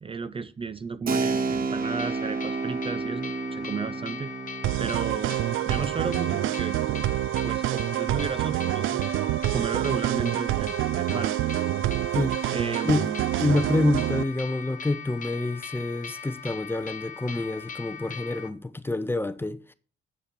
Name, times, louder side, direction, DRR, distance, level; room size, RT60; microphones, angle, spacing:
voice 1, 0.0-4.3 4.8-5.4 5.6-6.8 7.4-9.1 9.5-11.3 12.5-13.3, right 5 dB, 25° right, 0.5 m, -33 dB
Keyboard (musical), 1.1-9.4, right 4 dB, 45° right, 1.1 m, -33 dB
sound 1, 1.8-18.5, left 7 dB, 40° left, 0.9 m, -40 dB
sound 2, 4.6-14.2, right 15 dB, 85° right, 0.4 m, -27 dB
voice 2, 12.1-12.5 12.8-13.1 13.4-19.7, left 2 dB, 10° left, 0.7 m, -27 dB
7.8 x 6.9 x 6.7 m
cardioid pair, 90°, 20 cm